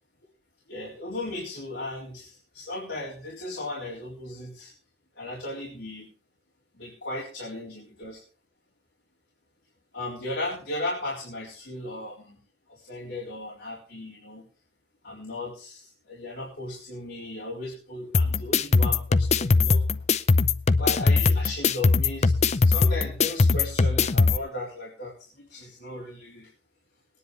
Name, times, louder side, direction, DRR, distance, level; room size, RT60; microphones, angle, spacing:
voice 1, 0.7-4.7 5.2-6.1 6.7-8.2 9.9-12.4 12.7-14.4 15.0-19.8 20.8-26.5, left 2 dB, 80° left, -5 dB, 3.9 m, -36 dB
sound 1, 18.1-24.4, left 4 dB, 40° left, 0.5 m, -21 dB
21.5 x 10.0 x 3.3 m, 0.37 s
head